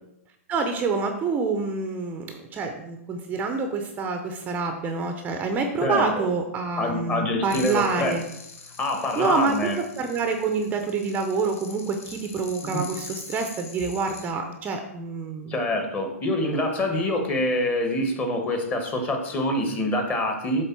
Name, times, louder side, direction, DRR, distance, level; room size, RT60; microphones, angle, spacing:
voice 1, 0.5-8.2 9.2-15.6, right 4 dB, 20° right, 5 dB, 0.7 m, -27 dB
voice 2, 5.8-6.3 6.8-8.2 8.8-9.8 12.7-12.8 15.5-20.7, left 1 dB, 20° left, 3 dB, 1.4 m, -25 dB
sound 1, 7.5-14.3, left 5 dB, 70° left, 1.6 m, -43 dB
8.0 x 3.8 x 6.0 m, 0.80 s
hypercardioid pair, 140°, 8 cm